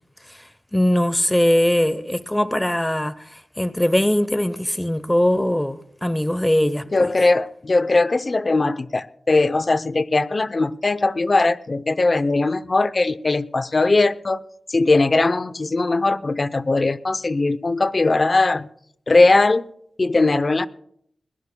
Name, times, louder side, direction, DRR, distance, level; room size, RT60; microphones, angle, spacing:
voice 1, 0.7-7.1, left 1 dB, 10° left, 0.8 m, -21 dB
voice 2, 6.9-14.4 14.7-18.7 19.1-19.6 20.0-20.7, left 3 dB, 40° left, 0.6 m, -19 dB
21.0 x 19.5 x 2.2 m
wide cardioid pair, 80°, 0 cm